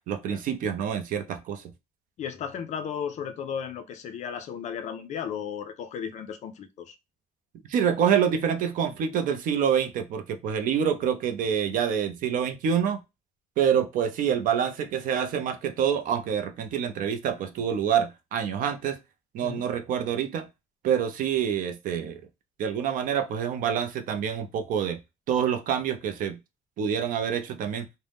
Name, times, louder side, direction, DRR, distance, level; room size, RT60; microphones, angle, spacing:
voice 1, 0.1-1.6 7.7-13.0 13.6-19.0 19.3-20.5 20.8-22.2 22.6-25.0 25.3-26.4 26.8-27.9, right 8 dB, 55° right, 0.5 m, -26 dB
voice 2, 2.2-7.0 19.4-19.6, left 7 dB, 45° left, 0.4 m, -35 dB
2.6 x 2.0 x 3.3 m
cardioid pair, 175°, 17 cm